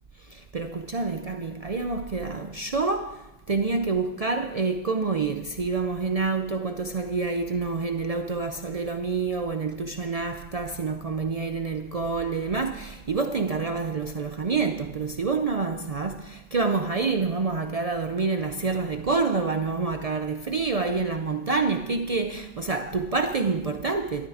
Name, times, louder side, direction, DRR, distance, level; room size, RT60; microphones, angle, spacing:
voice 1, 0.3-24.3, right 4 dB, 40° right, 0.7 m, -27 dB
13.0 x 12.5 x 4.9 m
omnidirectional pair, 1.0 m